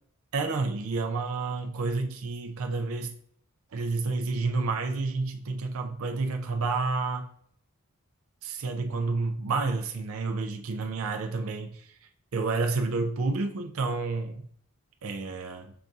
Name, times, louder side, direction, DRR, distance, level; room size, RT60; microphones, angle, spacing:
voice 1, 0.3-3.1 3.7-7.3 8.4-11.9 12.3-14.5 15.0-15.7, right 3 dB, 75° right, 4 dB, 0.5 m, -30 dB
5.7 x 2.6 x 3.5 m, 0.64 s
head